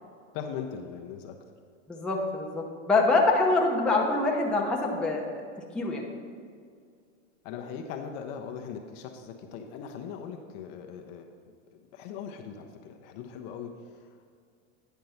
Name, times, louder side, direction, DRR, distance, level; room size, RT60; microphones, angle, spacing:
voice 1, 0.3-1.4 7.4-11.3 11.9-14.3, left 7 dB, 40° left, 4 dB, 0.6 m, -40 dB
voice 2, 1.9-5.5 5.7-6.0, left 3 dB, 5° left, -2 dB, 0.6 m, -25 dB
9.2 x 4.5 x 5.4 m, 2.1 s
supercardioid pair, 140°, 37 cm